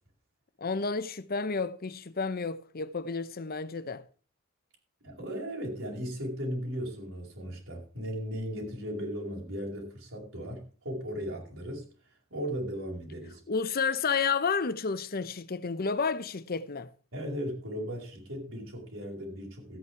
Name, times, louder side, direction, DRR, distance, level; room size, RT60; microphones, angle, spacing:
voice 1, 0.6-4.0 13.5-16.9, left 5 dB, 45° left, 0.9 m, -31 dB
voice 2, 5.0-11.9 12.3-13.4 17.1-19.8, equal, 70° right, 5.0 m, -36 dB
14.0 x 8.5 x 4.7 m
head